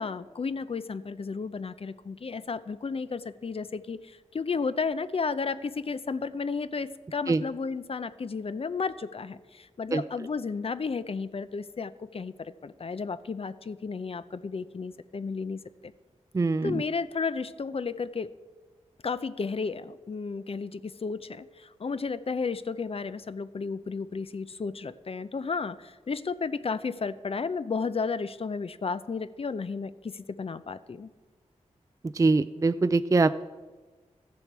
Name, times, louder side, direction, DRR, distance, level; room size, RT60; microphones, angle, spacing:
voice 1, 0.0-15.9 16.6-18.3 19.0-31.1, left 4 dB, 50° left, 14 dB, 0.5 m, -33 dB
voice 2, 16.3-16.8 32.1-33.4, right 3 dB, 25° right, 13 dB, 0.3 m, -23 dB
14.5 x 7.0 x 4.7 m, 1.3 s
cardioid pair, 50°, 12 cm